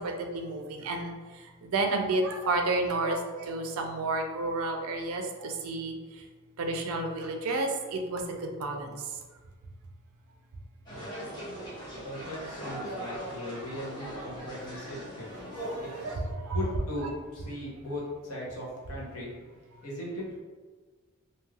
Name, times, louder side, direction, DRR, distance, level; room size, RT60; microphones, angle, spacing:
voice 1, 0.0-5.9 6.6-9.0 15.7-16.6, right 2 dB, 80° right, 4 dB, 0.4 m, -31 dB
sound 1, 10.9-16.1, right 1 dB, 20° left, 0.7 m, -39 dB
voice 2, 11.9-15.3 15.8-16.2 16.5-19.3 19.8-20.3, left 1 dB, 80° left, -4 dB, 0.9 m, -38 dB
3.1 x 2.6 x 2.3 m, 1.4 s
head